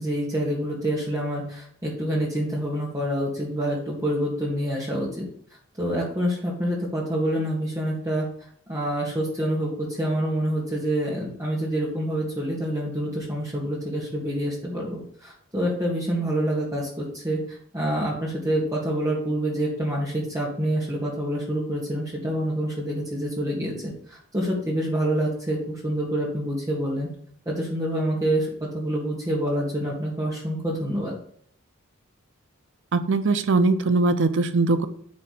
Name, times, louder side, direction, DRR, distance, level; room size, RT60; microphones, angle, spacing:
voice 1, 0.0-5.3 5.8-8.3 8.7-27.1 27.5-31.1, right 1 dB, 15° right, -5 dB, 1.7 m, -27 dB
voice 2, 32.9-34.9, right 3 dB, 60° right, 10 dB, 0.6 m, -21 dB
9.7 x 3.4 x 6.5 m, 0.62 s
head